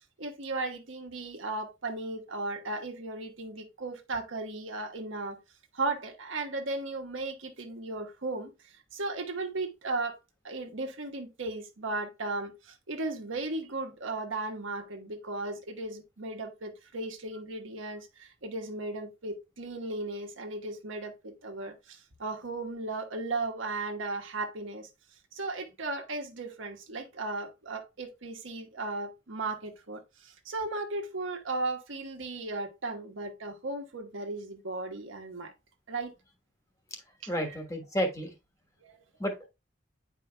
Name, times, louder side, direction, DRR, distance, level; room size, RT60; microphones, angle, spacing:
voice 1, 0.2-5.4 5.7-10.2 10.4-24.9 25.3-35.5 35.9-36.1 37.2-37.3 38.8-39.0, right 2 dB, 85° right, 1.2 m, -36 dB
voice 2, 37.3-38.3 39.2-39.5, equal, 15° left, 1.3 m, -31 dB
9.4 x 4.8 x 2.2 m
head